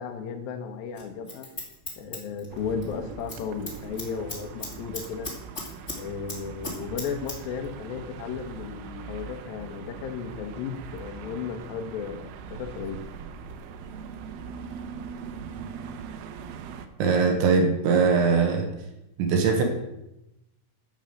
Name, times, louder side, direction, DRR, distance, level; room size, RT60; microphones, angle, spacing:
voice 1, 0.0-1.5 2.0-5.3 6.0-13.0, left 6 dB, 70° left, 3 dB, 2.3 m, -34 dB
Scissors, 0.9-2.9 3.2-3.4 3.7-6.0 6.3-7.4 7.6-7.7, left 2 dB, 25° left, 1.5 m, -36 dB
sound 1, 2.5-16.9, right 6 dB, 85° right, 3.4 m, -41 dB
voice 2, 17.0-18.7 19.2-19.6, right 5 dB, 70° right, 3 dB, 3.5 m, -21 dB
12.5 x 5.7 x 7.8 m, 0.90 s
omnidirectional pair, 5.8 m